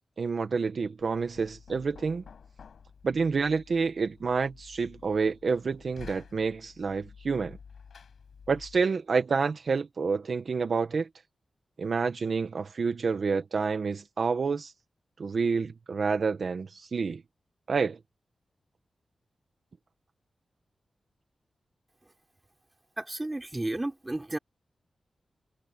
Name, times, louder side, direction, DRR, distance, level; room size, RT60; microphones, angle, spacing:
voice 1, 0.2-2.2 3.0-7.6 8.5-11.1 11.8-14.7 15.2-17.2 17.7-18.0, right 5 dB, 65° right, 1.6 m, -28 dB
Knock, 1.0-8.9, left 6 dB, 80° left, 7.0 m, -51 dB
voice 2, 23.0-24.4, right 2 dB, 25° right, 3.7 m, -32 dB
cardioid pair, 65°, 0 cm